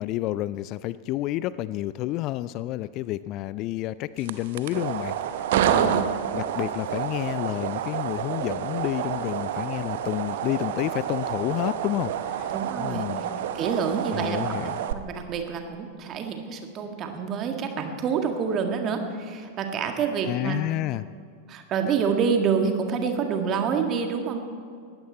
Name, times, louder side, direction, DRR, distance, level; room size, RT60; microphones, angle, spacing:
voice 1, 0.0-13.3 14.1-14.8 20.2-21.1, left 15 dB, 40° left, 17 dB, 0.3 m, -30 dB
sound 1, 4.2-14.9, right 10 dB, 55° right, 0.8 m, -29 dB
voice 2, 5.5-6.0 12.5-13.0 13.5-14.5 14.9-20.6 21.5-24.4, right 6 dB, 30° right, 4 dB, 1.9 m, -27 dB
20.0 x 15.0 x 4.2 m, 2.2 s
figure-of-eight pair, 90°, 0 cm